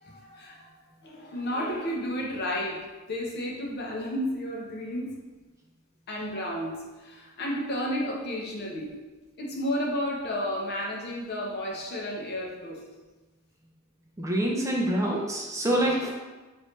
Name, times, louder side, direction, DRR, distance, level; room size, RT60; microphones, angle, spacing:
voice 1, 0.0-0.7 1.0-5.1 6.1-8.9 9.4-12.8, equal, 50° left, -2 dB, 0.7 m, -32 dB
voice 2, 14.2-16.1, right 1 dB, 15° right, -2 dB, 0.5 m, -26 dB
3.3 x 2.6 x 3.1 m, 1.2 s
head